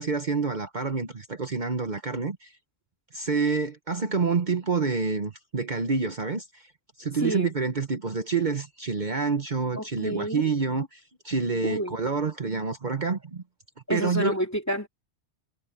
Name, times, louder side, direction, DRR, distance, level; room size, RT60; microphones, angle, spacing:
voice 1, 0.0-2.5 3.1-6.7 7.0-13.4 13.9-14.4, right 4 dB, 45° right, 1.3 m, -27 dB
voice 2, 7.2-7.5 9.8-10.4 11.6-12.0 13.9-14.9, equal, 15° left, 2.7 m, -29 dB
omnidirectional pair, 1.2 m